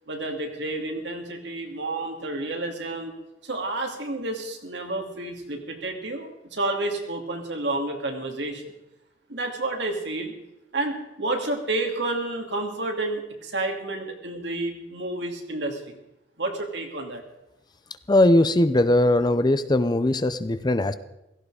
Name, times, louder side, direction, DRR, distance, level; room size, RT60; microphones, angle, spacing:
voice 1, 0.1-3.1 3.4-8.6 9.3-10.3 10.7-15.9 16.4-17.2, right 2 dB, 75° right, 2 dB, 2.6 m, -30 dB
voice 2, 18.1-20.9, left 1 dB, 25° left, 13 dB, 0.6 m, -20 dB
16.5 x 15.0 x 4.9 m, 0.93 s
head